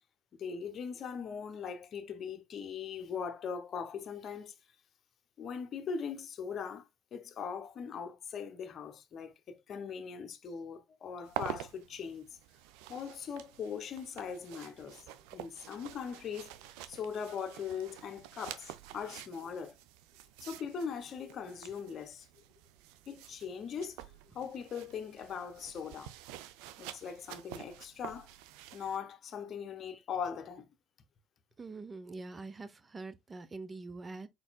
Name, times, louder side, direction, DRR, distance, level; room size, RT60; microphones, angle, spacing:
voice 1, 0.4-4.5 5.4-12.3 12.9-16.5 16.9-19.8 20.4-22.3 23.1-24.0 24.3-26.1 26.8-28.3 28.7-30.7, left 6 dB, 50° left, 0.8 m, -40 dB
sound 1, 11.3-29.0, right 13 dB, 75° right, 0.4 m, -48 dB
voice 2, 31.6-34.3, right 3 dB, 30° right, 0.7 m, -44 dB
4.8 x 4.2 x 2.3 m
hypercardioid pair, 60°, 0 cm